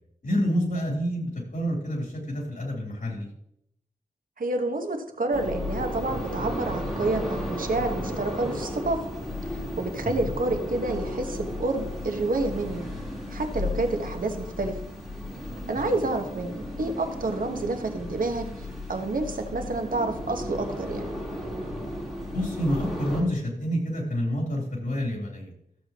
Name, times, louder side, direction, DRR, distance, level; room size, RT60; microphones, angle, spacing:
voice 1, 0.2-3.3 10.0-10.1 15.9-16.0 22.3-25.5, equal, 60° left, -1 dB, 3.6 m, -28 dB
voice 2, 4.4-9.0 9.5-12.9 13.3-14.7 15.7-18.5 18.9-21.1, right 2 dB, 70° right, 5 dB, 1.3 m, -29 dB
sound 1, 5.3-23.2, left 1 dB, ahead, 3.8 m, -34 dB
14.0 x 7.8 x 3.0 m, 0.76 s
wide cardioid pair, 75°, 15 cm